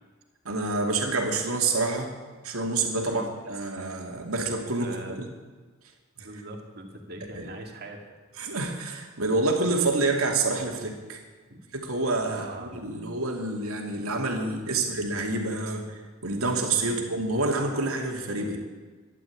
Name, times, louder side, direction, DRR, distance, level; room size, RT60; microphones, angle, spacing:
voice 1, 0.4-2.1 2.4-5.2 6.2-6.3 7.3-7.5 8.4-11.2 11.7-18.6, right 3 dB, 90° right, 2 dB, 2.6 m, -28 dB
voice 2, 4.8-5.2 6.2-8.1 11.5-11.6 12.3-12.8 16.8-17.2, right 1 dB, 50° right, 2 dB, 2.4 m, -41 dB
13.0 x 11.5 x 8.6 m, 1.4 s
head